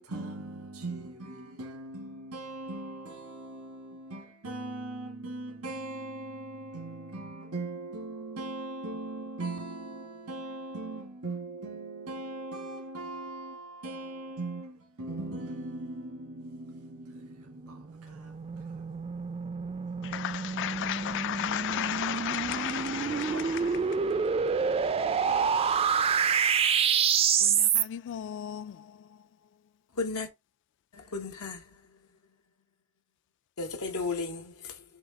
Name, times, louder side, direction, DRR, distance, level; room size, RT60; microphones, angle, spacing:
voice 1, 0.0-18.8 21.5-21.9 22.6-23.8 24.2-24.6 25.0-25.6, right 2 dB, 90° right, 1.4 m, -40 dB
sound 1, 17.8-27.8, right 6 dB, 25° right, 0.3 m, -28 dB
voice 2, 20.0-23.6 27.4-28.9, left 11 dB, 55° left, 0.3 m, -34 dB
voice 3, 29.9-30.3 30.9-32.0 33.6-34.8, left 4 dB, 85° left, 0.9 m, -35 dB
6.0 x 2.3 x 3.6 m
head